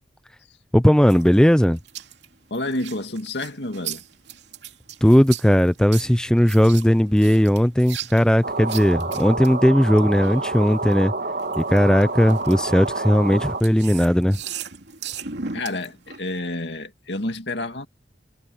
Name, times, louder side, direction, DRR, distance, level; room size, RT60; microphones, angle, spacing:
voice 1, 0.7-1.8 5.0-11.1 11.6-14.4, equal, 5° left, 0.5 m, -17 dB
sound 1, 1.1-10.9 11.4-16.4, right 7 dB, 90° right, 2.8 m, -38 dB
voice 2, 2.5-4.0 15.5-17.9, left 2 dB, 90° left, 2.1 m, -29 dB
sound 2, 8.4-13.6, right 3 dB, 60° right, 2.9 m, -28 dB
head